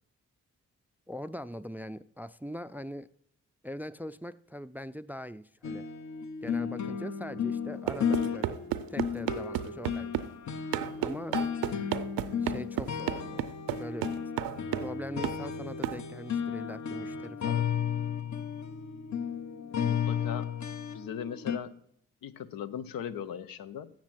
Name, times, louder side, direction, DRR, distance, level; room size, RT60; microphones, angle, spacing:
voice 1, 1.1-3.1 3.6-5.9 6.4-10.2 11.0-11.4 12.4-13.4 13.8-14.3 14.8-17.7, equal, 5° right, 17 dB, 0.3 m, -41 dB
sound 1, 5.6-21.6, left 7 dB, 55° left, 0.9 m, -34 dB
sound 2, 7.9-10.3 10.7-15.0 15.2-15.4 15.8-16.0, right 12 dB, 90° right, 0.5 m, -33 dB
voice 2, 19.6-20.6 20.9-21.7 22.2-23.9, left 8 dB, 80° left, 13 dB, 0.7 m, -39 dB
7.3 x 7.2 x 7.5 m, 0.71 s
supercardioid pair, 45°, 34 cm